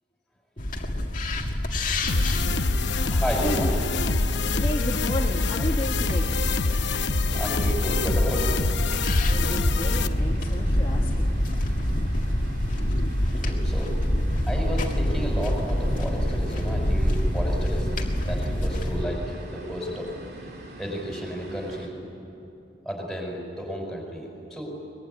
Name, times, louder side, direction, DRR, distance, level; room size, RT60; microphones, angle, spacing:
sound 1, 0.6-19.0, left 1 dB, 40° left, 2.0 m, -26 dB
sound 2, 2.0-21.9, right 1 dB, 55° right, 3.2 m, -43 dB
sound 3, 2.1-10.1, left 3 dB, 65° left, 0.8 m, -25 dB
voice 1, 3.1-3.8 7.3-8.6 13.4-14.0 14.5-17.9 18.3-20.1 20.8-22.0 22.8-24.7, equal, ahead, 0 dB, 5.5 m, -32 dB
voice 2, 4.6-6.3 9.2-11.3, equal, 25° left, -2 dB, 1.5 m, -33 dB
23.5 x 21.5 x 10.0 m, 2.9 s
head